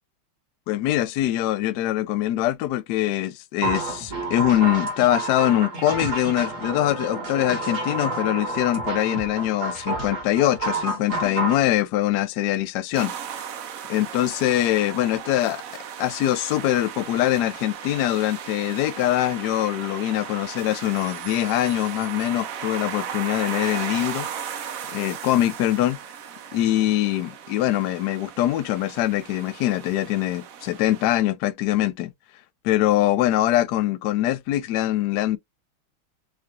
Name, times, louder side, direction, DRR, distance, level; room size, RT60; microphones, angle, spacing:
voice 1, 0.7-13.1 13.9-15.6 16.0-26.0 26.5-32.1 32.6-35.4, left 14 dB, 90° left, 0.9 m, -23 dB
sound 1, 3.6-11.6, right 2 dB, 40° right, 1.6 m, -29 dB
sound 2, 12.9-31.1, right 8 dB, 90° right, 0.7 m, -36 dB
4.8 x 2.5 x 2.9 m
omnidirectional pair, 2.4 m